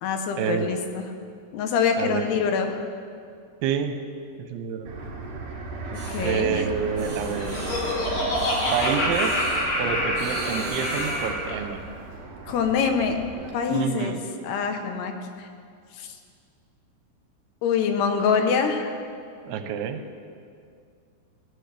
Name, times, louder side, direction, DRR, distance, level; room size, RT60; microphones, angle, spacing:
voice 1, 0.0-1.1 1.5-2.9 6.1-6.6 12.5-13.2 13.5-14.2 14.4-15.5 16.0-16.1 17.6-18.9, left 6 dB, 80° left, 5 dB, 3.0 m, -25 dB
voice 2, 2.0-2.3 3.6-4.0 4.5-4.9 6.2-7.6 8.7-9.4 9.8-11.8 13.7-14.3 19.4-20.0, right 7 dB, 80° right, 7 dB, 2.8 m, -28 dB
Fixed-wing aircraft airplane, 4.9-13.5, right 3 dB, 55° right, 3.5 m, -36 dB
sound 1, 5.9-6.4 6.9-8.0 8.3-9.6 10.1-11.3, right 2 dB, 40° right, 4.6 m, -39 dB
Laughter, 7.1-11.5, left 1 dB, 45° left, 3.4 m, -27 dB
19.5 x 14.5 x 3.4 m, 2.3 s
omnidirectional pair, 4.7 m